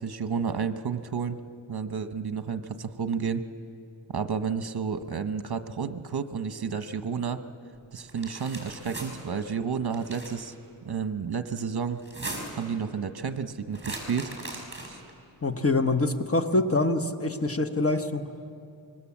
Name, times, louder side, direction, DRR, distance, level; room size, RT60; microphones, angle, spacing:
voice 1, 0.0-1.4 1.7-3.4 4.1-7.4 7.9-10.5 10.8-12.0 12.6-15.0, right 6 dB, 55° right, 10 dB, 1.1 m, -31 dB
sound 1, 8.1-9.1 9.9-10.4 12.0-12.7 13.7-15.1, right 2 dB, 25° right, 5.2 m, -38 dB
voice 2, 15.4-18.2, left 2 dB, 30° left, 8 dB, 1.1 m, -25 dB
25.0 x 21.5 x 7.3 m, 2.5 s
wide cardioid pair, 90°, 45 cm